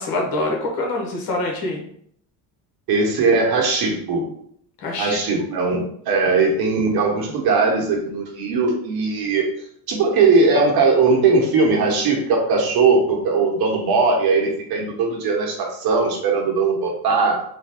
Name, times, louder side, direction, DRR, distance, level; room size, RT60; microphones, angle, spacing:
voice 1, 0.0-1.8 4.8-5.4, left 2 dB, 55° left, 1 dB, 1.1 m, -25 dB
voice 2, 2.9-4.3 5.0-9.5 9.9-17.4, right 4 dB, 60° right, 1 dB, 1.0 m, -19 dB
3.3 x 2.2 x 3.5 m, 0.65 s
cardioid pair, 105°, 42 cm